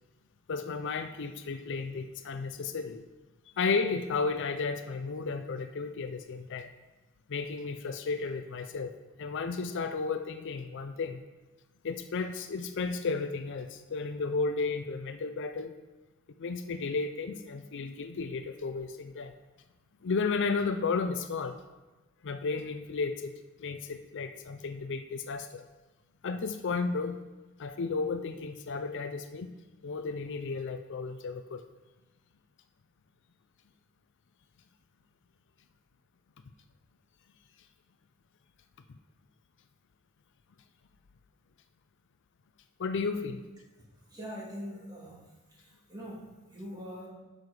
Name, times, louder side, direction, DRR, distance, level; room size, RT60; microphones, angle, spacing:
voice 1, 0.5-3.0 3.6-6.7 7.3-8.9 9.2-11.2 11.8-15.7 16.4-19.3 20.0-21.5 22.2-25.6 26.2-27.2 27.6-29.5 29.8-31.6 42.8-43.4, left 4 dB, 60° left, 9 dB, 0.5 m, -33 dB
voice 2, 44.1-45.2 45.5-46.2 46.5-47.1, equal, 20° right, -5 dB, 2.3 m, -42 dB
8.3 x 6.6 x 4.9 m, 1.1 s
head